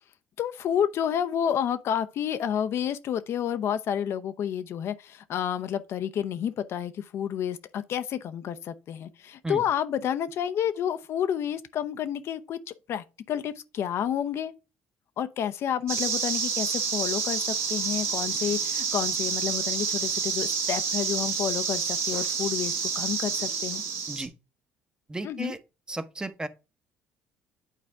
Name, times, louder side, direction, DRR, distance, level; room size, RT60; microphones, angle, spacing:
voice 1, 0.4-12.6 12.9-14.5 15.2-17.4 17.7-23.8 25.2-25.5, left 9 dB, 55° left, 0.6 m, -30 dB
sound 1, 15.9-24.3, right 6 dB, 55° right, 1.5 m, -29 dB
voice 2, 25.1-25.6 25.9-26.5, right 2 dB, 15° right, 0.9 m, -34 dB
9.2 x 4.2 x 3.4 m
hypercardioid pair, 55°, 5 cm